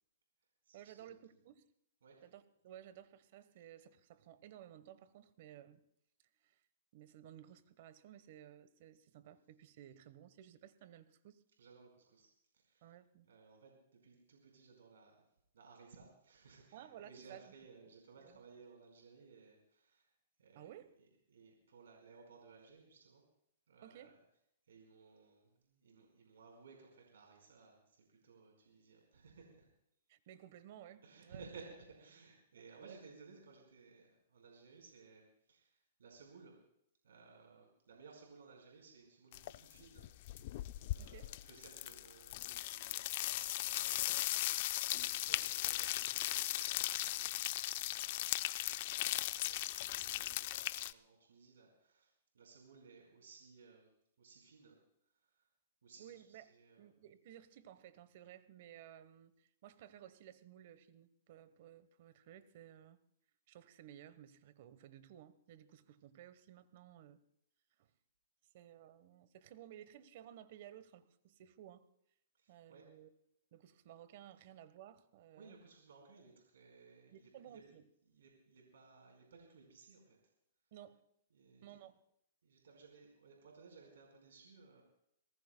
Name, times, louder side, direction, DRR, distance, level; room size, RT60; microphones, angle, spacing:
voice 1, 0.7-1.7 2.2-5.9 6.4-6.6 6.9-11.4 12.8-13.3 16.7-17.5 18.2-18.4 20.5-20.9 23.8-24.2 30.1-31.4 32.7-33.0 41.0-41.3 56.0-63.0 63.5-67.2 67.8-67.9 68.5-71.9 72.5-73.1 73.5-75.6 77.1-77.8 80.7-81.0 81.6-82.0, right 11 dB, 50° right, 1.1 m, -56 dB
voice 2, 11.6-12.3 12.5-12.9 13.3-15.2 15.5-20.1 20.4-20.7 21.3-23.2 23.7-24.2 24.7-29.7 31.0-36.6 37.0-40.6 40.9-47.5 47.9-48.3 48.6-53.9 54.2-54.8 55.2-55.5 55.8-56.9 72.3-72.8 75.4-77.6 78.0-80.2 81.3-81.8 82.4-84.8, right 4 dB, 85° right, 4.7 m, -60 dB
sound 1, 39.3-39.7 40.0-50.9, left 16 dB, 50° left, 0.5 m, -38 dB
25.5 x 19.0 x 2.3 m
hypercardioid pair, 145°, 0 cm